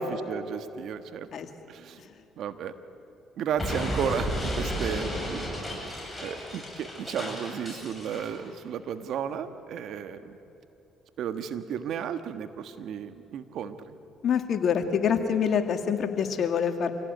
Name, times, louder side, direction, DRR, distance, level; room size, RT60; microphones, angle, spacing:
voice 1, 0.0-1.3 1.7-2.0 2.4-2.7 3.4-5.6 6.2-10.4 11.2-14.0, right 8 dB, 65° right, 10 dB, 1.4 m, -34 dB
Explosion, 3.6-8.4, equal, 10° left, 7.9 m, -33 dB
voice 2, 14.2-16.9, left 7 dB, 60° left, 7 dB, 2.0 m, -26 dB
26.0 x 17.0 x 9.4 m, 2.9 s
supercardioid pair, 65°, 0 cm